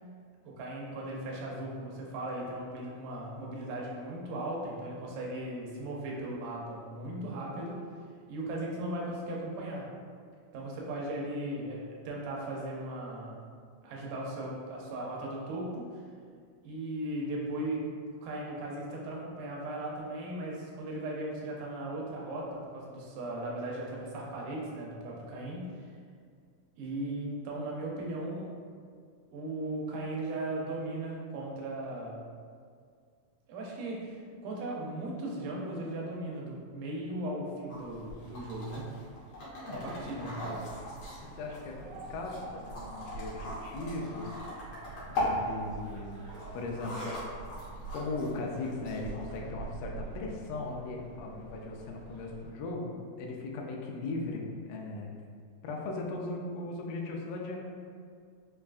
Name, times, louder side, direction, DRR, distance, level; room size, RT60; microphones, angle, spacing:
voice 1, 0.4-7.8 8.3-9.9 10.5-13.4 13.8-16.0 16.6-25.9 26.8-28.6 29.3-32.2 33.5-38.9 39.7-40.6, right 1 dB, 90° right, -3 dB, 2.2 m, -37 dB
sound 1, 37.7-49.4, left 1 dB, 65° left, 1.6 m, -40 dB
voice 2, 39.6-40.0 41.3-44.4 45.1-46.2 46.5-47.1 47.9-55.1 55.6-57.6, left 2 dB, 90° left, 0 dB, 2.1 m, -38 dB
sound 2, 39.7-52.5, right 4 dB, 70° right, 1.6 m, -46 dB
5.4 x 2.3 x 2.4 m, 2.1 s
omnidirectional pair, 3.6 m